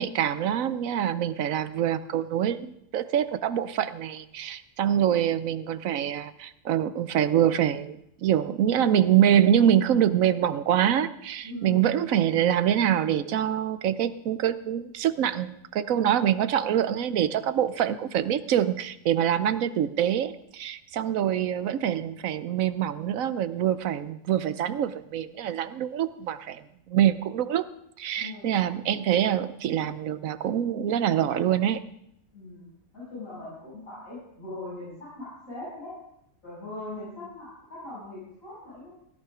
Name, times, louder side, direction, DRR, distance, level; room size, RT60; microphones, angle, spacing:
voice 1, 0.0-26.6 26.9-27.7 28.0-31.8, right 10 dB, 80° right, 14 dB, 1.2 m, -25 dB
voice 2, 11.4-11.9 28.2-28.6 32.3-32.7 32.9-35.9 36.4-38.9, left 1 dB, 75° left, -10 dB, 7.5 m, -40 dB
16.5 x 11.5 x 4.9 m, 0.77 s
omnidirectional pair, 1.4 m